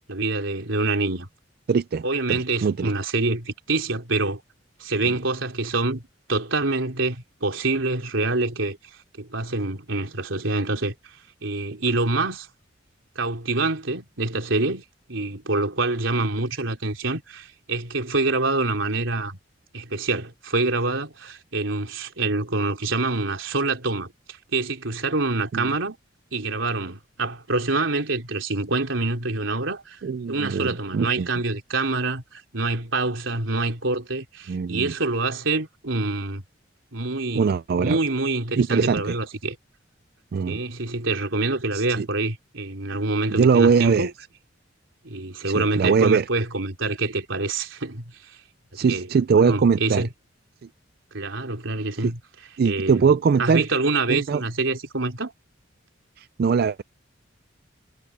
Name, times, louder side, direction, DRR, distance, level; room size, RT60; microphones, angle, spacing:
voice 1, 0.1-1.3 2.0-4.4 4.8-6.0 6.3-8.8 9.1-10.9 11.4-12.5 13.2-14.8 15.1-19.4 19.7-24.1 24.5-26.0 26.3-30.0 30.3-36.4 36.9-39.6 40.5-44.1 45.0-48.1 48.8-50.1 51.1-52.2 52.6-53.1 53.4-55.3, right 3 dB, 85° right, 3.5 m, -26 dB
voice 2, 1.7-2.9 25.5-25.7 30.0-31.3 34.5-34.9 37.3-38.0 38.6-39.2 40.3-40.6 41.7-42.1 43.3-44.1 45.5-46.3 48.7-50.0 52.0-52.1 52.6-53.7 54.1-54.4 56.2-56.8, right 5 dB, 50° right, 0.4 m, -21 dB
head